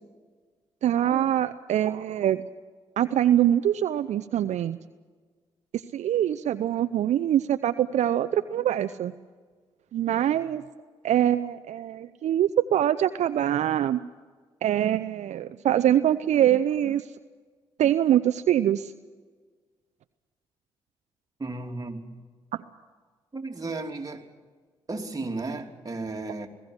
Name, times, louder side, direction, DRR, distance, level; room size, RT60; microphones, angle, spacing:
voice 1, 0.8-2.4 3.0-4.8 5.7-9.1 9.9-10.6 11.0-14.0 14.6-17.1 17.8-18.9, right 11 dB, 70° right, 11 dB, 0.6 m, -24 dB
voice 2, 21.4-22.0 23.3-24.3 24.9-26.5, right 3 dB, 30° right, 2 dB, 3.1 m, -34 dB
20.5 x 15.5 x 9.7 m, 1.5 s
supercardioid pair, 50°, 12 cm